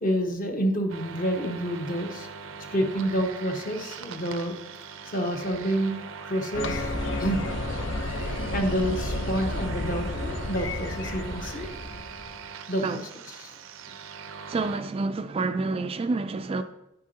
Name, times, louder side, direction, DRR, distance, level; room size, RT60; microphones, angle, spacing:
voice 1, 0.0-2.3 2.7-4.5 5.0-6.9 7.2-7.5 8.2-11.8 12.7-13.5, equal, 45° left, 1.3 m, -29 dB
sound 1, 0.9-14.8, right 6 dB, 85° right, 0.6 m, -41 dB
sound 2, 6.5-12.4, left 2 dB, 65° left, 0.8 m, -31 dB
voice 2, 14.5-16.6, right 3 dB, 30° right, 0.3 m, -28 dB
10.0 x 8.4 x 2.8 m
head